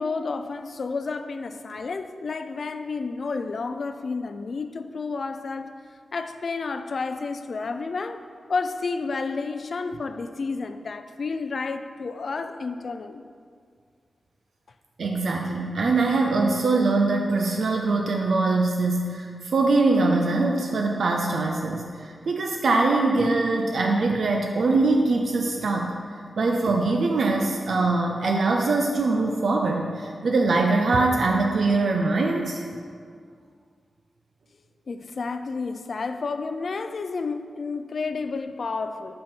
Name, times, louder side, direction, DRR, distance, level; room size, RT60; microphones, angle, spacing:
voice 1, 0.0-5.7 6.1-8.2 8.5-13.2 34.9-39.2, left 4 dB, 55° left, 9 dB, 0.4 m, -31 dB
voice 2, 15.0-26.0 26.4-32.6, right 3 dB, 75° right, 1 dB, 0.5 m, -23 dB
7.5 x 5.6 x 4.4 m, 2.1 s
wide cardioid pair, 140°, 0 cm